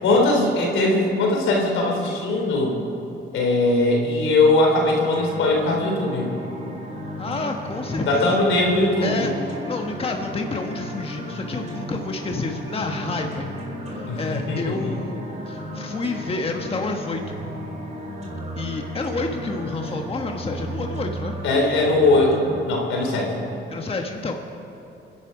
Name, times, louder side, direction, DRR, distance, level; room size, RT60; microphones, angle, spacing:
voice 1, 0.0-2.7 3.3-6.3 8.1-9.3 14.1-14.9 21.4-22.4 22.6-23.4, left 2 dB, 80° left, 0 dB, 3.8 m, -20 dB
sound 1, 5.1-22.6, equal, 35° right, 3.8 m, -34 dB
voice 2, 7.2-8.4 9.0-13.6 13.9-15.2 15.5-17.4 18.6-21.4 23.7-24.3, left 3 dB, 30° left, 3 dB, 1.3 m, -29 dB
25.5 x 11.0 x 5.0 m, 3.0 s
cardioid pair, 90°, 20 cm